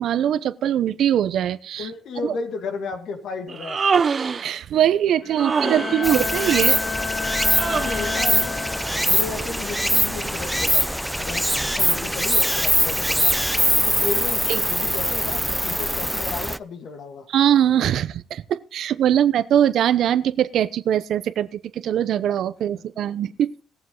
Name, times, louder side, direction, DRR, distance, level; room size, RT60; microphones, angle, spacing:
voice 1, 0.0-1.9 2.2-2.3 4.4-6.8 7.7-7.8 14.5-14.6 17.3-23.5, right 10 dB, 75° right, 0.9 m, -21 dB
voice 2, 1.8-3.8 5.5-6.2 7.7-10.9 11.1-17.3, left 4 dB, 70° left, 2.4 m, -34 dB
Human voice, 3.5-4.5 5.4-6.1 7.5-8.2, right 5 dB, 40° right, 0.6 m, -24 dB
Bowed string instrument, 5.2-9.3, left 5 dB, 40° left, 1.3 m, -30 dB
Stream, 6.0-16.6, equal, ahead, 0.6 m, -22 dB
20.0 x 7.4 x 3.9 m
cardioid pair, 90°, 0 cm